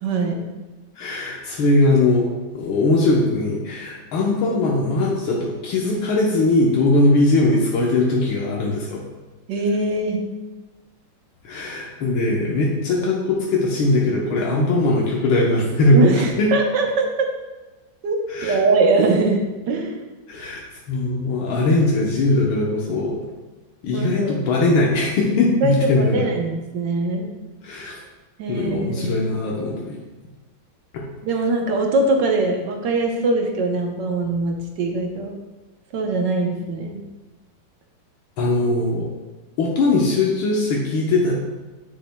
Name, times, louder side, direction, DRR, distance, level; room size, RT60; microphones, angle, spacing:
voice 1, 0.0-0.4 9.5-10.2 15.9-17.3 18.0-20.0 23.9-24.6 25.6-27.3 28.4-29.1 31.2-35.4 35.9-37.0, right 3 dB, 65° right, 2 dB, 1.5 m, -22 dB
voice 2, 1.0-2.3 2.5-9.0 11.4-16.1 16.4-16.5 18.3-18.6 20.3-20.6 20.9-23.2 23.8-26.3 27.6-28.0 28.5-30.0 30.9-31.0 38.4-39.1 39.6-41.3, left 2 dB, 85° left, -3 dB, 1.8 m, -20 dB
9.0 x 7.3 x 2.2 m, 1.2 s
omnidirectional pair, 2.2 m